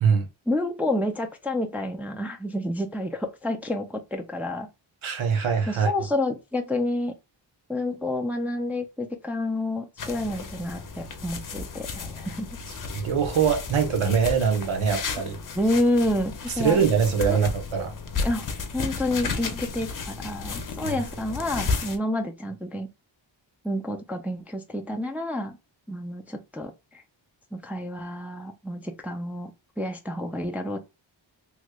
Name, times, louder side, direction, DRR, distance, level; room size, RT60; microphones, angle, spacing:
voice 1, 0.5-4.7 5.7-7.2 7.7-12.6 15.5-16.8 17.3-17.4 18.2-22.9 23.6-25.6 25.9-27.0 27.5-29.5 29.8-30.8, left 1 dB, 5° right, 0.4 m, -29 dB
voice 2, 5.0-5.9 12.9-15.4 16.6-17.9 20.8-21.0, right 6 dB, 85° right, 1.0 m, -23 dB
sound 1, 10.0-22.0, left 4 dB, 45° left, 0.7 m, -33 dB
3.2 x 3.1 x 2.3 m
wide cardioid pair, 155°, 47 cm